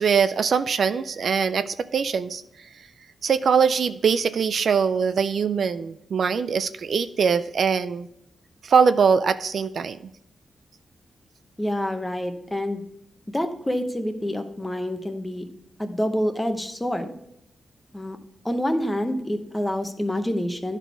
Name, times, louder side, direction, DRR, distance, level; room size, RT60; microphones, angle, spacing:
voice 1, 0.0-2.4 3.2-8.1 8.6-10.0, right 6 dB, 60° right, 12 dB, 0.3 m, -22 dB
voice 2, 11.6-12.8 13.3-15.5 15.8-17.1 17.9-18.2 18.4-20.8, equal, 10° left, 7 dB, 0.7 m, -27 dB
11.0 x 4.1 x 4.5 m, 0.80 s
wide cardioid pair, 130°, 0 cm